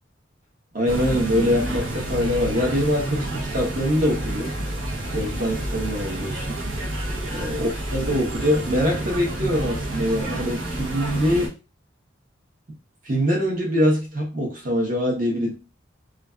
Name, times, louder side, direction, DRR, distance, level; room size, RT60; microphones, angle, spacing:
voice 1, 0.7-4.5 5.1-6.6 7.3-11.6 13.0-15.5, equal, 45° right, -2 dB, 0.9 m, -23 dB
sound 1, 0.9-11.5, right 1 dB, 80° right, 0.9 m, -29 dB
2.4 x 2.4 x 2.2 m, 0.29 s
head